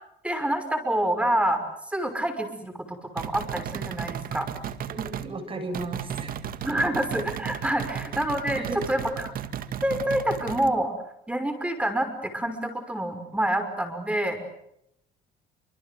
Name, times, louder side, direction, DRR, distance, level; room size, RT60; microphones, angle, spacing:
voice 1, 0.2-4.5 6.6-9.3 9.8-10.9 11.3-14.4, right 1 dB, 5° right, 8 dB, 5.8 m, -27 dB
sound 1, 3.2-5.3 5.7-10.7, right 9 dB, 60° right, 1.9 m, -34 dB
voice 2, 4.9-6.3 6.7-6.8 7.8-7.9 8.6-8.9, right 3 dB, 30° right, 8 dB, 7.6 m, -35 dB
29.5 x 25.5 x 7.9 m, 0.77 s
cardioid pair, 110°, 17 cm